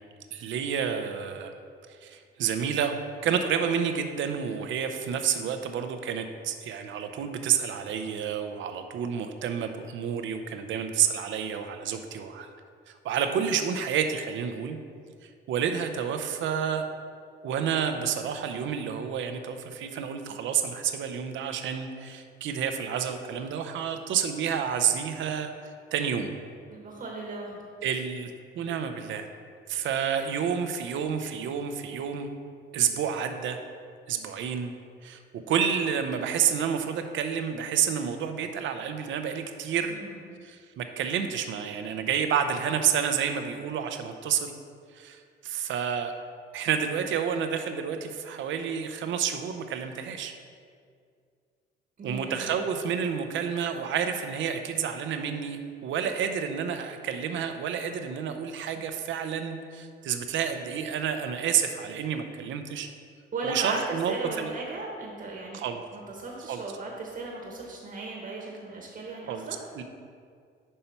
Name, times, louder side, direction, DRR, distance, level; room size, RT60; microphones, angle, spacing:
voice 1, 0.3-1.5 2.0-2.9 3.2-12.5 12.9-14.8 15.2-16.8 17.4-25.5 25.9-26.3 27.8-29.3 29.7-32.3 32.7-33.6 34.1-34.7 35.0-40.0 40.4-44.5 44.9-46.1 46.5-50.3 52.0-62.9 63.4-64.5 65.5-65.8 66.5-66.6 69.3-69.4 69.8-69.9, right 7 dB, 75° right, 7 dB, 0.6 m, -29 dB
voice 2, 26.7-27.7 39.9-40.2 52.0-52.5 63.3-69.6, right 3 dB, 45° right, -1 dB, 1.1 m, -36 dB
5.5 x 5.5 x 4.4 m, 2.2 s
cardioid pair, 90°, 20 cm